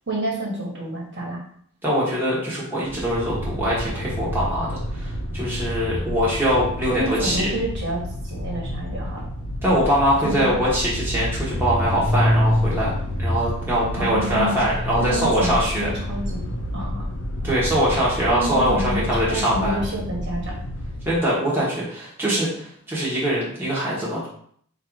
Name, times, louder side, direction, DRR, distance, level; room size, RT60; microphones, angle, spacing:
voice 1, 0.1-1.4 6.9-9.2 10.2-10.6 14.0-14.6 15.0-16.4 16.7-17.1 18.3-20.5, right 1 dB, 50° right, -3 dB, 1.3 m, -28 dB
voice 2, 1.8-7.5 9.6-15.9 17.4-19.8 21.1-24.3, equal, 10° right, -8 dB, 1.1 m, -23 dB
sound 1, 2.8-21.2, equal, 60° left, 0.6 m, -28 dB
4.5 x 2.6 x 4.6 m, 0.63 s
head